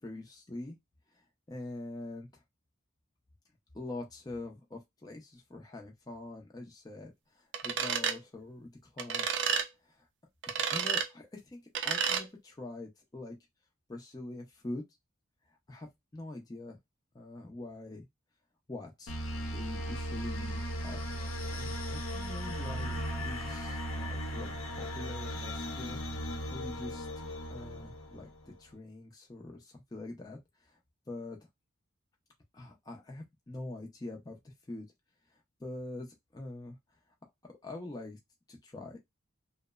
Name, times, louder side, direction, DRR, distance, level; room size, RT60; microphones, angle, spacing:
voice 1, 0.0-0.8 1.1-2.4 3.7-9.5 9.8-10.1 10.5-13.4 13.9-14.8 15.5-15.9 16.1-16.8 17.1-18.1 18.7-19.1 19.5-26.0 26.3-27.1 27.5-30.8 31.1-31.4 32.5-34.9 35.3-37.0 37.4-38.2 38.5-39.0, left 2 dB, 20° left, 0.4 m, -44 dB
sound 1, 7.5-8.2 9.0-9.7 10.4-11.1 11.7-12.2, right 7 dB, 55° right, 0.4 m, -30 dB
sound 2, 19.1-28.5, equal, 85° left, 0.7 m, -37 dB
2.9 x 2.0 x 2.2 m
head